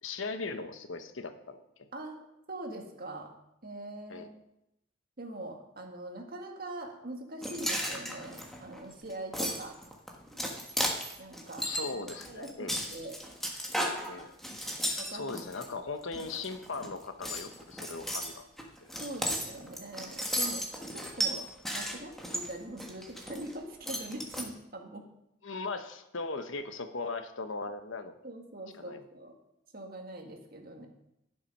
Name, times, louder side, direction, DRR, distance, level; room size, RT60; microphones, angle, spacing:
voice 1, 0.0-1.9 4.1-4.3 11.6-12.8 14.1-14.3 15.1-18.5 18.8-18.9 25.4-28.1 28.8-29.0, left 3 dB, 75° left, 9 dB, 1.0 m, -38 dB
voice 2, 2.5-3.3 3.6-4.3 5.2-9.8 11.2-11.7 12.3-13.1 15.0-15.3 15.6-15.8 16.1-16.3 19.0-20.7 20.9-25.1 28.2-29.4 29.7-30.9, right 1 dB, 50° right, 2 dB, 1.7 m, -43 dB
sound 1, 7.4-15.7 16.1-16.9 17.2-23.5 23.8-24.4, equal, ahead, 1.4 m, -35 dB
12.0 x 7.3 x 5.4 m, 0.82 s
head